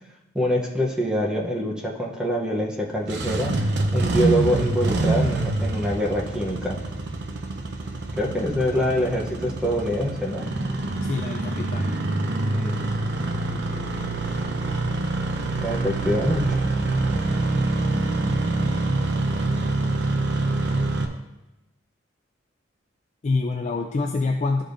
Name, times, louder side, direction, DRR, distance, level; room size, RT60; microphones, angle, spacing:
voice 1, 0.3-3.5 3.9-6.8 8.2-10.4 12.5-12.8 15.6-16.6, equal, 5° right, -2 dB, 0.8 m, -25 dB
Engine starting, 2.9-21.1, right 2 dB, 65° right, 0.7 m, -25 dB
voice 2, 11.0-12.0 23.2-24.6, left 3 dB, 40° left, 3 dB, 0.4 m, -26 dB
11.5 x 5.1 x 2.6 m, 0.96 s
head